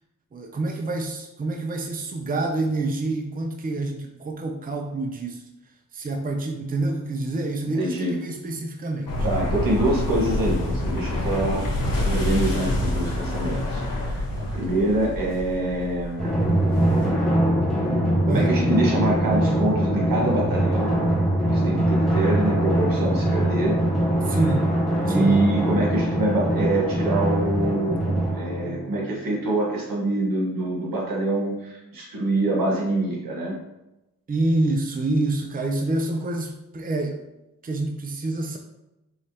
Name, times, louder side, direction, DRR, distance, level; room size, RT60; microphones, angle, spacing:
voice 1, 0.3-5.4 5.9-9.2 18.3-18.5 24.3-24.7 25.1-25.4 34.3-37.2 37.6-38.6, right 2 dB, 25° right, 3 dB, 0.5 m, -27 dB
voice 2, 7.7-8.1 9.2-11.7 12.0-16.3 18.2-20.9 21.5-23.8 25.1-33.6, right 1 dB, 80° right, -3 dB, 1.5 m, -25 dB
sound 1, 9.1-17.1, left 1 dB, 80° left, 1.2 m, -27 dB
Drum, 16.2-29.3, right 1 dB, ahead, 1.3 m, -22 dB
4.9 x 3.1 x 2.9 m, 0.92 s
cardioid pair, 70°, 34 cm